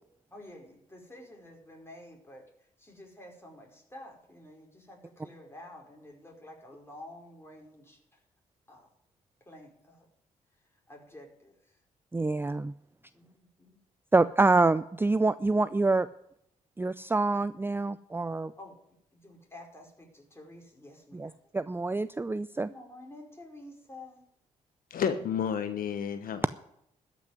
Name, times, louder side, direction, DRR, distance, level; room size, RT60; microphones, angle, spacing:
voice 1, 0.3-8.2 8.7-8.9 9.4-10.1 10.9-11.8 13.1-13.8 18.6-18.8 19.1-21.4 22.6-24.2, left 1 dB, 15° left, 0 dB, 4.9 m, -50 dB
voice 2, 12.1-12.7 14.1-16.1 16.8-18.5 21.1-22.7, right 3 dB, 15° right, 15 dB, 0.5 m, -26 dB
voice 3, 24.9-26.5, left 7 dB, 65° left, 9 dB, 1.1 m, -31 dB
13.0 x 6.1 x 9.5 m, 0.75 s
hypercardioid pair, 50°, 16 cm